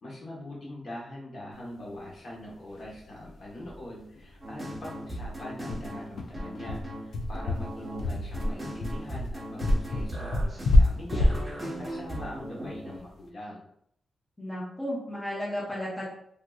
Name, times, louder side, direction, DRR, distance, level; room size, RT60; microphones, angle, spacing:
voice 1, 0.0-13.6, left 1 dB, 45° left, -4 dB, 1.0 m, -43 dB
sound 1, 2.8-2.9 3.2-3.3 3.6-3.8 4.2-4.3 4.7-13.1, left 1 dB, 65° left, 0.4 m, -26 dB
sound 2, 4.4-12.9, right 1 dB, 20° right, 1.1 m, -38 dB
voice 2, 14.4-16.0, equal, 10° left, -7 dB, 0.8 m, -34 dB
3.5 x 2.7 x 2.3 m, 0.70 s
wide cardioid pair, 170°, 0 cm